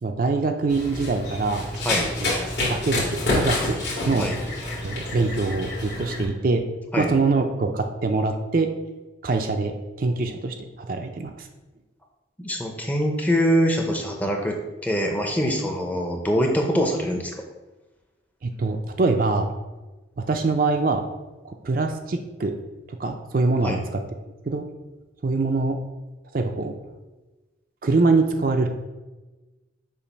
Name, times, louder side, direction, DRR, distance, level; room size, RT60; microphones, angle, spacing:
voice 1, 0.0-1.7 2.2-2.4 2.6-3.8 4.1-4.3 4.8-6.6 7.0-8.7 9.2-9.7 10.0-11.5 18.4-19.5 20.2-21.0 21.4-22.5 22.9-24.0 24.5-24.6 25.2-25.8 26.3-26.7 27.8-28.7, right 3 dB, 50° right, 5 dB, 0.4 m, -24 dB
Run, 0.7-6.2, left 2 dB, 65° left, 2.0 m, -28 dB
voice 2, 12.4-14.6 14.8-17.4 23.6-23.8, equal, 10° left, 2 dB, 0.6 m, -23 dB
7.0 x 2.5 x 5.2 m, 1.2 s
head